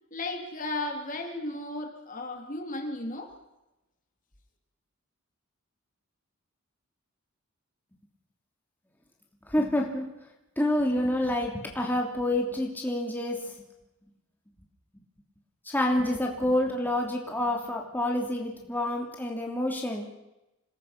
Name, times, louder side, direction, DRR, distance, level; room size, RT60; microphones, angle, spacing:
voice 1, 0.1-3.3, left 2 dB, 40° left, 3 dB, 3.3 m, -35 dB
voice 2, 9.5-10.0 10.6-13.5 15.7-20.1, left 1 dB, 10° left, 0 dB, 2.9 m, -28 dB
27.0 x 20.0 x 6.0 m, 0.94 s
head